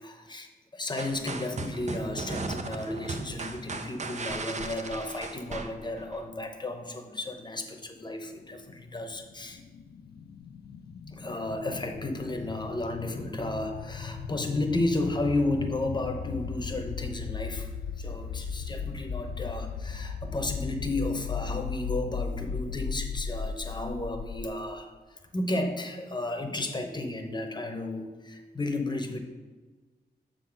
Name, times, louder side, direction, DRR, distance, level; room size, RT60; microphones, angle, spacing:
voice 1, 0.0-9.6 11.1-17.7 18.0-29.2, left 2 dB, 25° left, 5 dB, 0.8 m, -33 dB
sound 1, 1.0-6.2, right 3 dB, 45° right, 0.5 m, -37 dB
sound 2, 8.6-24.5, left 5 dB, 70° left, 0.4 m, -37 dB
7.0 x 3.9 x 5.7 m, 1.3 s
wide cardioid pair, 100°, 17 cm